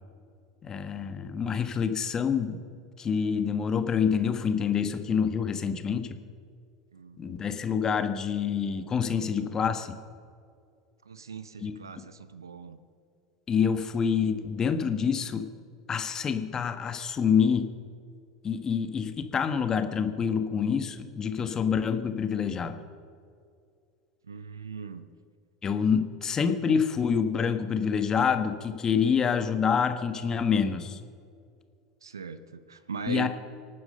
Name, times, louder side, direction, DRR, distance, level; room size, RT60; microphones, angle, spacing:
voice 1, 0.6-2.6 3.0-6.2 7.2-10.0 11.6-11.8 13.5-15.5 15.9-17.7 18.4-22.8 25.6-31.0 33.1-33.3, left 6 dB, 30° left, 8 dB, 1.5 m, -27 dB
voice 2, 11.0-12.8 24.2-25.1 32.0-33.3, right 5 dB, 85° right, 13 dB, 0.8 m, -39 dB
25.0 x 9.5 x 5.5 m, 2.3 s
figure-of-eight pair, 80°, 2 cm